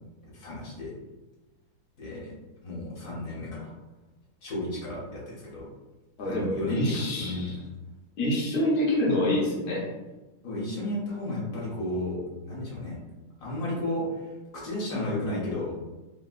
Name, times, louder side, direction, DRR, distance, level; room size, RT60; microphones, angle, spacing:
voice 1, 0.3-0.9 2.0-2.3 2.6-3.7 4.4-5.6 6.2-7.5 10.4-12.2 12.5-13.0 13.4-14.3 14.5-15.7, left 1 dB, 50° left, -6 dB, 1.1 m, -33 dB
voice 2, 6.2-7.5 8.2-9.9, left 1 dB, 70° left, -5 dB, 0.6 m, -26 dB
3.0 x 2.7 x 2.4 m, 1.1 s
omnidirectional pair, 2.4 m